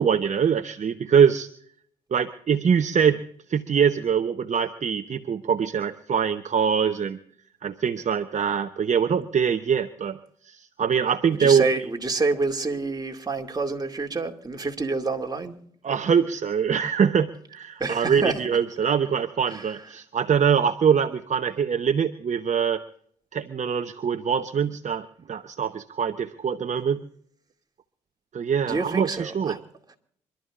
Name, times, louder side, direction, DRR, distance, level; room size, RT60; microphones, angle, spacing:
voice 1, 0.0-1.5 2.1-3.2 3.5-7.2 7.6-10.2 10.5-11.6 15.8-22.8 23.3-27.0 28.3-29.5, right 7 dB, 45° right, 8 dB, 0.9 m, -23 dB
voice 2, 11.3-15.5 17.8-18.5 19.5-19.9 28.6-29.6 29.9-30.0, right 3 dB, 25° right, 3 dB, 2.5 m, -28 dB
27.0 x 12.5 x 2.5 m, 0.65 s
supercardioid pair, 55°, 17 cm